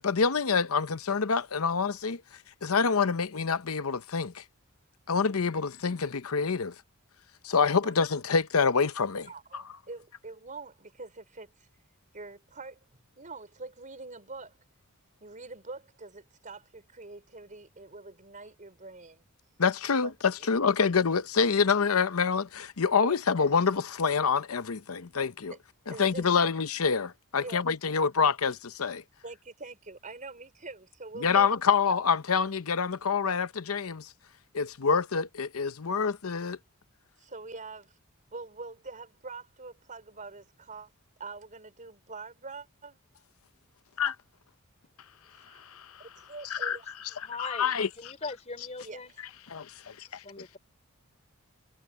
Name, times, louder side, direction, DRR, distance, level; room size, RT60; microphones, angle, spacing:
voice 1, 0.0-2.2 2.6-4.4 5.1-6.7 7.4-9.6 19.6-25.5 25.9-29.0 31.2-34.1 34.5-36.6 44.0-44.2 45.5-46.0 46.5-46.8 47.2-47.9 49.5-50.4, left 5 dB, 75° left, 0.8 m, -27 dB
voice 2, 9.2-11.7 12.1-12.8 13.2-14.6 15.2-19.2 20.0-20.1 20.4-20.5 23.0-23.2 25.5-25.6 25.9-26.6 27.4-27.9 29.2-31.5 37.2-38.0 38.3-40.9 41.2-43.0 45.3-45.6 46.0-47.2 48.8-49.0, right 3 dB, 35° right, 4.8 m, -44 dB
voice 3, 47.2-47.7 48.0-49.1 49.5-49.6 50.2-50.6, left 3 dB, 30° left, 4.5 m, -40 dB
head